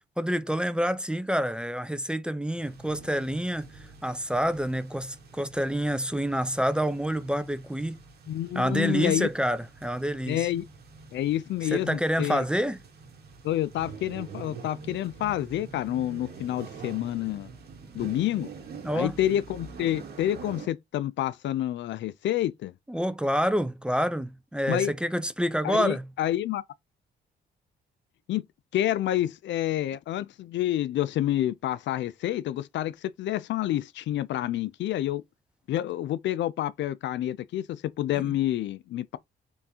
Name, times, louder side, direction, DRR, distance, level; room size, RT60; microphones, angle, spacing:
voice 1, 0.2-8.0 8.5-10.5 11.7-12.8 18.8-19.2 22.9-26.0 38.2-38.3, equal, 5° right, 0.5 m, -28 dB
sound 1, 2.5-20.7, right 4 dB, 55° right, 1.4 m, -46 dB
voice 2, 8.3-9.3 10.3-10.7 11.1-12.4 13.4-17.5 17.9-18.5 18.9-22.7 24.7-24.9 25.6-26.6 28.3-28.4 28.7-35.2 35.7-39.2, left 13 dB, 70° left, 0.4 m, -28 dB
3.8 x 3.4 x 2.8 m
cardioid pair, 90°, 20 cm